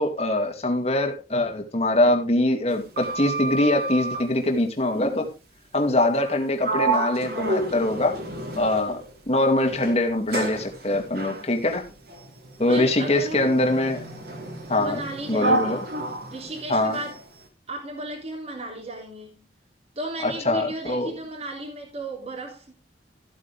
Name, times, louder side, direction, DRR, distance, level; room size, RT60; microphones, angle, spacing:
voice 1, 0.0-5.3 5.7-8.2 8.6-9.0 9.3-11.9 12.6-14.0 14.7-15.0 15.3-15.8 16.7-17.0 20.2-21.1, left 1 dB, 35° left, 2.4 m, -23 dB
Sliding door, 2.7-4.3 6.1-6.4 6.6-9.1 9.7-17.2, right 2 dB, 55° right, 3.4 m, -30 dB
voice 2, 12.7-13.6 14.8-15.8 16.3-17.2 17.7-19.5 19.9-22.7, right 2 dB, 35° right, 3.5 m, -35 dB
14.5 x 8.8 x 3.5 m
head